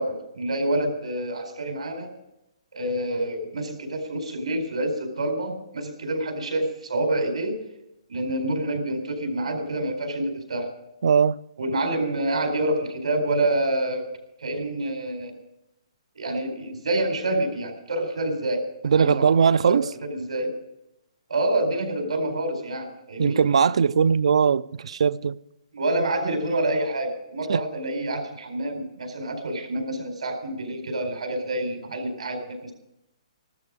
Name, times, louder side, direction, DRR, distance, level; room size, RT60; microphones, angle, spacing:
voice 1, 0.0-2.1 2.7-7.5 8.1-10.7 11.6-14.0 14.4-15.3 16.1-19.3 19.7-19.8 20.2-20.5 21.3-23.4 25.7-32.7, right 1 dB, 90° right, 4.5 m, -27 dB
voice 2, 11.0-11.4 18.8-19.9 23.2-25.4 27.5-27.6, right 6 dB, 65° right, 0.5 m, -20 dB
14.5 x 13.0 x 5.1 m
hypercardioid pair, 165°, 3 cm